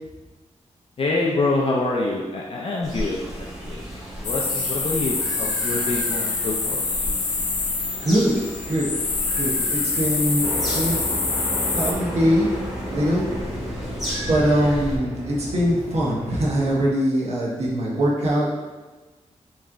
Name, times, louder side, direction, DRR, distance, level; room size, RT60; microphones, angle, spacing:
voice 1, 1.0-6.8, left 2 dB, 50° left, -3 dB, 0.4 m, -26 dB
sound 1, 2.8-15.0, equal, ahead, 1.2 m, -35 dB
sound 2, 4.2-11.9, left 3 dB, 85° left, 0.6 m, -26 dB
voice 2, 8.0-8.4 8.7-8.9 9.4-11.0 11.7-12.5 12.9-13.2 14.3-18.5, equal, 60° right, -5 dB, 0.9 m, -22 dB
sound 3, 10.4-16.7, equal, 25° right, 1.0 m, -32 dB
3.4 x 3.1 x 3.7 m, 1.2 s
wide cardioid pair, 130°, 12 cm